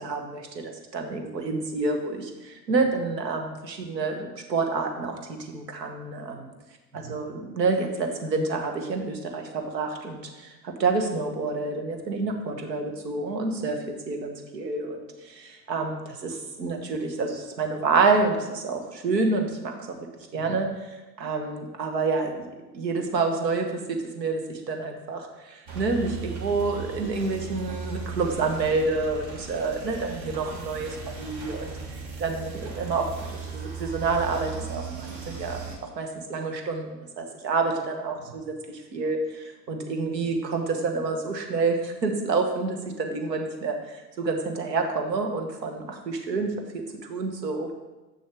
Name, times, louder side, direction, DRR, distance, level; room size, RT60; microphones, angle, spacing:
voice 1, 0.0-6.5 6.9-19.7 20.3-22.5 22.7-38.1 38.7-47.7, right 3 dB, 80° right, 4 dB, 1.2 m, -28 dB
sound 1, 25.7-35.8, right 5 dB, 55° right, 1.8 m, -37 dB
7.3 x 6.5 x 3.4 m, 1.1 s
figure-of-eight pair, 85°, 50 cm